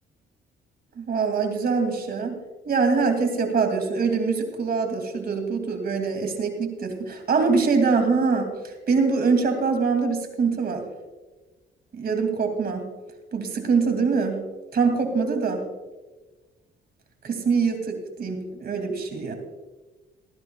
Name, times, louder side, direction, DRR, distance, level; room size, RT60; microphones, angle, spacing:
voice 1, 1.0-2.4 2.7-10.8 11.9-12.8 13.3-14.4 14.7-15.6 17.3-19.3, right 4 dB, 50° right, 5 dB, 2.5 m, -24 dB
19.0 x 14.5 x 2.3 m, 1.2 s
cardioid pair, 90°, 20 cm